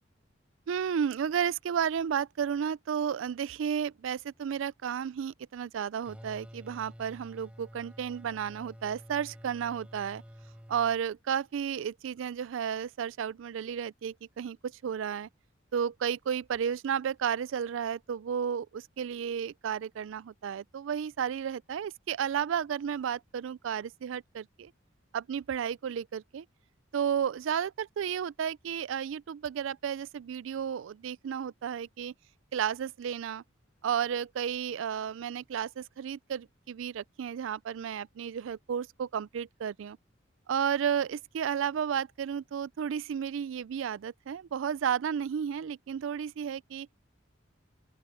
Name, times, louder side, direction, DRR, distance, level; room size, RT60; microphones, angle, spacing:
voice 1, 0.7-10.2 10.7-15.3 15.7-24.7 25.1-26.5 26.9-32.1 32.5-33.4 33.8-40.0 40.5-46.9, right 8 dB, 75° right, 0.3 m, -32 dB
sound 1, 6.1-11.0, equal, 5° right, 5.3 m, -50 dB
open air
head